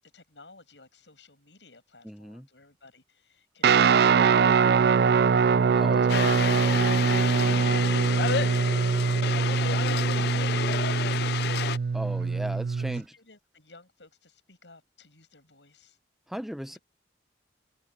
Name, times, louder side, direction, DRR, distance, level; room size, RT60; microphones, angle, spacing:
voice 1, 0.0-4.7 12.9-16.0 16.7-16.8, left 3 dB, 80° left, 7.8 m, -55 dB
voice 2, 2.1-2.4 5.7-6.1 11.9-13.0 16.3-16.8, equal, ahead, 0.6 m, -37 dB
Guitar, 3.6-13.0, right 5 dB, 60° right, 0.4 m, -23 dB
sound 1, 6.1-11.8, left 8 dB, 60° left, 0.4 m, -30 dB
open air
head